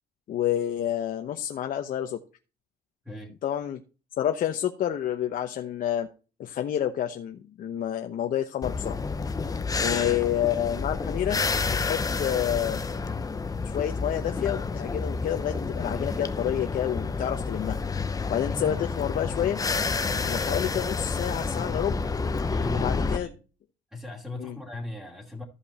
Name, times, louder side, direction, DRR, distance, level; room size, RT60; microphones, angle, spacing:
voice 1, 0.3-2.2 3.4-3.8 4.2-6.1 6.4-9.0 9.8-11.4 11.7-12.8 13.6-17.8 18.3-19.6 20.2-21.9 22.7-23.3 24.4-24.6, left 10 dB, 55° left, 5 dB, 1.0 m, -29 dB
sound 1, 8.6-23.2, left 4 dB, 20° left, 0.9 m, -29 dB
voice 2, 9.8-10.2 22.4-23.4 23.9-25.4, left 2 dB, 5° right, -3 dB, 2.7 m, -38 dB
14.0 x 5.4 x 4.3 m, 0.33 s
cardioid pair, 110°, 17 cm